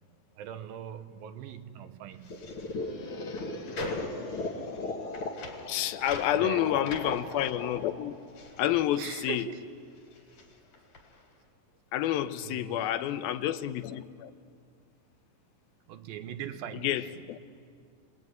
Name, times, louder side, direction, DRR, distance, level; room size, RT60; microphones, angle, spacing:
voice 1, 0.4-2.5 6.3-6.8 9.0-9.7 12.4-13.0 15.9-17.3, right 9 dB, 80° right, 2.8 m, -41 dB
sound 1, 2.1-9.6 9.9-11.3, left 2 dB, 65° left, 4.4 m, -44 dB
sound 2, 2.3-9.2, left 2 dB, 45° left, 2.4 m, -38 dB
voice 2, 5.7-8.2 8.6-9.4 11.9-14.3 16.8-17.4, left 12 dB, 85° left, 2.7 m, -29 dB
28.5 x 20.5 x 9.4 m
omnidirectional pair, 4.2 m